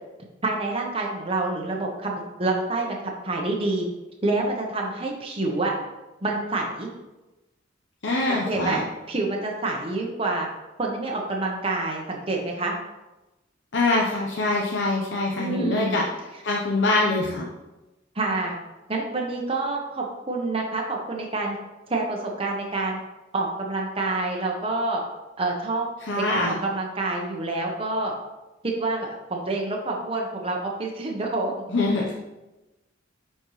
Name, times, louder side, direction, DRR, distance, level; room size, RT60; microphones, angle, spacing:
voice 1, 0.4-3.0 3.2-3.9 4.2-5.7 6.2-6.9 8.3-8.8 9.1-10.5 10.8-12.8 15.4-16.0 18.1-18.6 18.9-21.6 21.9-23.0 23.3-25.0 25.4-25.9 26.1-28.1 28.6-31.7, right 2 dB, 30° right, -1 dB, 0.9 m, -27 dB
voice 2, 8.0-8.8 13.7-16.0 16.4-17.5 26.1-26.6 31.7-32.1, left 2 dB, 65° left, -2 dB, 0.8 m, -24 dB
10.0 x 4.4 x 3.1 m, 1.0 s
head